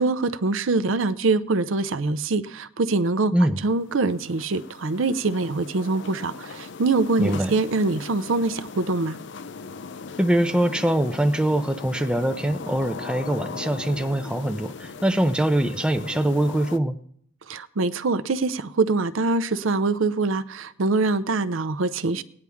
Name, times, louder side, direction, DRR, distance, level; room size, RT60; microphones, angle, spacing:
voice 1, 0.0-3.3 3.6-9.2 17.5-22.2, right 3 dB, 70° right, 13 dB, 0.6 m, -24 dB
sound 1, 3.6-16.8, left 4 dB, 55° left, 0.5 m, -39 dB
voice 2, 7.2-7.5 10.2-17.0, right 1 dB, 5° right, 8 dB, 0.4 m, -23 dB
17.5 x 9.6 x 3.5 m, 0.65 s
head